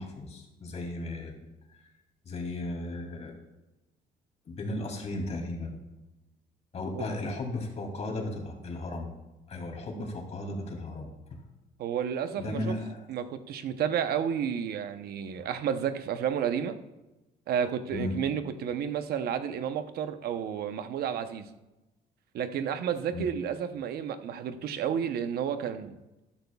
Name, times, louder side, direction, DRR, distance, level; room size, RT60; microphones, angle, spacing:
voice 1, 0.0-1.3 2.2-3.3 4.5-5.7 6.7-9.1 9.5-11.1 12.4-13.1 17.9-18.2 23.1-23.3, left 2 dB, 40° left, 2 dB, 2.7 m, -35 dB
voice 2, 11.8-12.7 13.1-16.8 17.5-21.5 22.3-26.0, right 8 dB, 65° right, 9 dB, 0.9 m, -31 dB
14.0 x 12.0 x 2.4 m, 1.0 s
cardioid pair, 110°, 17 cm